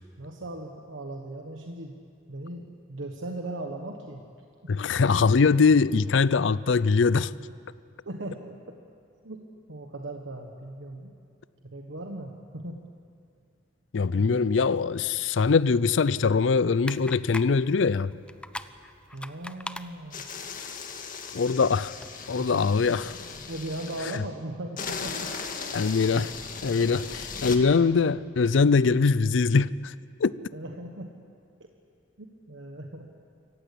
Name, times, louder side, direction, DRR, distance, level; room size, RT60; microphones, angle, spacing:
voice 1, 0.2-2.0 2.3-4.2 4.6-4.8 8.0-8.8 9.2-9.4 9.7-11.1 11.6-12.8 14.1-14.5 19.1-20.2 22.3-22.6 23.5-25.3 25.6-25.7 26.8-26.9 30.5-31.1 32.2-33.1, right 1 dB, 90° right, 1.4 m, -38 dB
voice 2, 4.7-7.3 13.9-18.1 21.3-21.9 22.3-23.1 24.1-24.2 25.7-26.3 26.6-27.0 27.4-29.9 30.2-30.3, left 4 dB, 75° left, 0.5 m, -22 dB
sound 1, 16.6-22.1, left 1 dB, 5° left, 0.5 m, -43 dB
sound 2, 20.1-24.2 24.8-27.6, left 5 dB, 45° left, 1.7 m, -37 dB
25.5 x 15.0 x 8.5 m
head